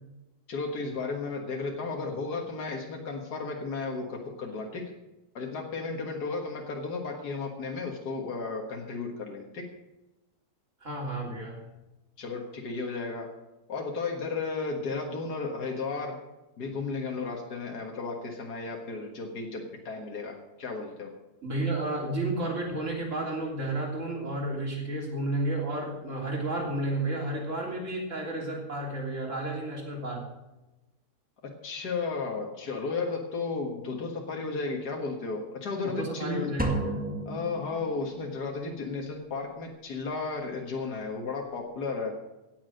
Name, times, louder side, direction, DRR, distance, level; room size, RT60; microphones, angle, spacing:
voice 1, 0.5-4.8 5.3-9.6 12.2-13.3 13.7-16.2 16.6-21.1 31.6-36.5 37.3-42.1, left 4 dB, 90° left, 1 dB, 2.2 m, -34 dB
voice 2, 10.8-11.6 21.4-30.2 35.8-37.0, right 2 dB, 50° right, -2 dB, 3.7 m, -32 dB
sound 1, 36.6-38.4, equal, 5° right, 1.5 m, -33 dB
17.0 x 7.3 x 6.4 m, 1.0 s
omnidirectional pair, 1.7 m